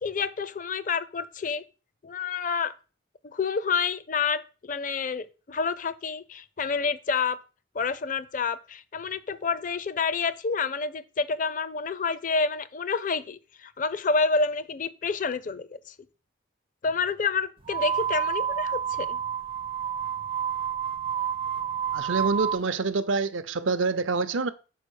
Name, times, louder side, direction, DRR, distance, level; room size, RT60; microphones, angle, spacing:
voice 1, 0.0-1.6 2.0-2.7 3.2-7.4 7.7-15.9 16.8-19.2, left 4 dB, 40° left, 0.5 m, -28 dB
sound 1, 17.6-22.6, right 8 dB, 25° right, 0.4 m, -29 dB
voice 2, 21.9-24.5, right 4 dB, 80° right, 0.7 m, -26 dB
6.3 x 4.9 x 6.4 m
head